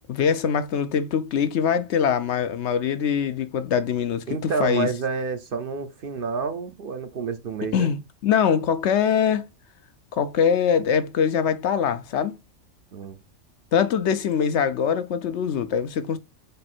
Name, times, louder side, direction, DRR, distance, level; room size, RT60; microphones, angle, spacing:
voice 1, 0.0-4.9 7.7-9.5 10.1-12.3 13.7-16.2, left 7 dB, 70° left, 0.9 m, -23 dB
voice 2, 4.3-7.9 12.9-13.2, right 5 dB, 55° right, 0.8 m, -29 dB
5.4 x 4.2 x 4.3 m
omnidirectional pair, 1.3 m